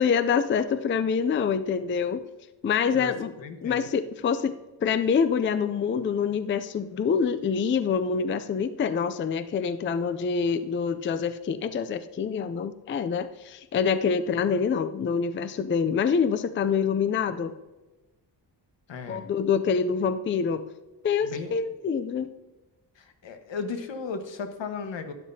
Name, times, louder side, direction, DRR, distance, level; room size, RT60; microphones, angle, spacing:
voice 1, 0.0-2.2 2.6-3.3 3.6-4.6 4.8-17.5 19.1-20.6 21.0-22.3, left 6 dB, 30° left, 12 dB, 0.3 m, -26 dB
voice 2, 3.4-3.9 14.4-14.6 18.9-19.3 21.2-21.5 23.0-25.1, left 4 dB, 85° left, 7 dB, 1.3 m, -35 dB
12.5 x 11.0 x 2.7 m, 1.1 s
wide cardioid pair, 160°, 43 cm